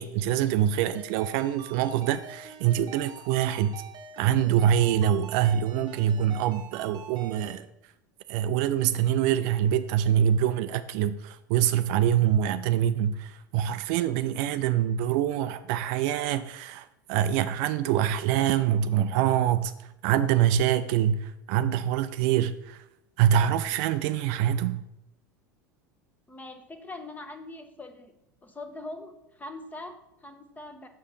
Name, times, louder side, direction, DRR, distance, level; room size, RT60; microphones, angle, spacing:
voice 1, 0.0-3.7 4.2-7.7 8.3-19.7 20.0-22.8 23.2-24.8, right 10 dB, 55° right, 12 dB, 0.4 m, -25 dB
Ringtone, 0.7-7.6, right 7 dB, 40° right, 0.9 m, -45 dB
voice 2, 26.3-28.1 28.4-30.9, left 2 dB, 15° left, 6 dB, 1.1 m, -42 dB
6.6 x 4.9 x 5.6 m, 0.84 s
hypercardioid pair, 85°, 11 cm